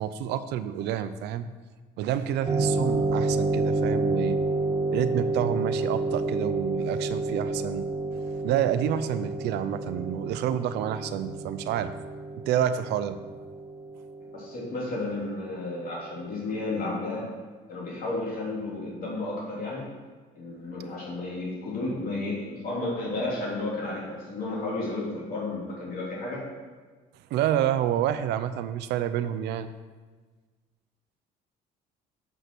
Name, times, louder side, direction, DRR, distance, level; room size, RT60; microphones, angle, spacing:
voice 1, 0.0-1.5 2.0-4.4 4.9-7.8 8.4-11.9 12.5-13.2 27.3-29.7, right 10 dB, 85° right, 12 dB, 0.5 m, -28 dB
sound 1, 2.5-15.6, right 2 dB, 20° right, 0.7 m, -30 dB
voice 2, 14.3-17.3 17.7-20.0 20.3-26.5, left 2 dB, 60° left, -5 dB, 2.9 m, -32 dB
7.4 x 5.6 x 6.0 m, 1.4 s
cardioid pair, 110°, 17 cm